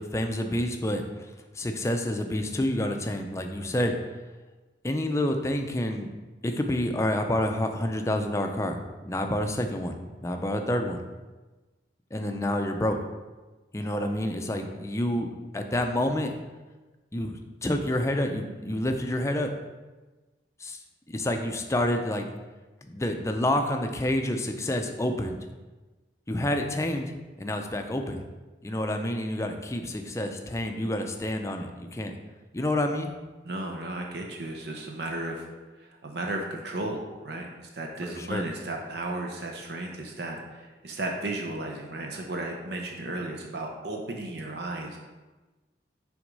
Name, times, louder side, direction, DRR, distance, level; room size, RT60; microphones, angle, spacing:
voice 1, 0.0-3.9 4.8-6.1 6.4-10.0 10.2-11.0 12.1-13.0 13.7-15.3 15.5-16.3 17.1-17.3 17.6-19.5 20.6-20.8 21.1-22.3 22.8-25.4 26.3-28.2 28.6-32.1 32.5-33.1 38.0-38.4, left 1 dB, 15° left, 5 dB, 0.5 m, -28 dB
voice 2, 33.4-35.5 35.8-45.0, right 2 dB, 65° right, 1 dB, 0.7 m, -34 dB
6.1 x 3.6 x 5.3 m, 1.2 s
head